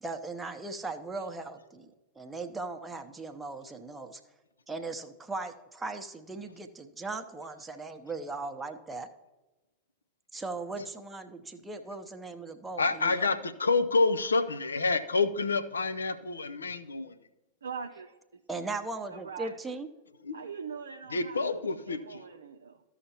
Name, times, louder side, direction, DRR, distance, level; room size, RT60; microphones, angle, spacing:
voice 1, 0.0-1.9 2.2-4.2 4.7-9.1 10.3-13.3 18.5-19.9, right 3 dB, 10° right, 5 dB, 0.8 m, -38 dB
voice 2, 12.8-17.2 20.2-20.4 21.1-22.2, left 3 dB, 75° left, 9 dB, 0.6 m, -28 dB
voice 3, 17.6-18.4 19.1-19.6 20.3-21.6 21.8-22.8, right 6 dB, 70° right, 2 dB, 0.5 m, -42 dB
15.0 x 5.7 x 2.9 m, 1.1 s
figure-of-eight pair, 90°, 0 cm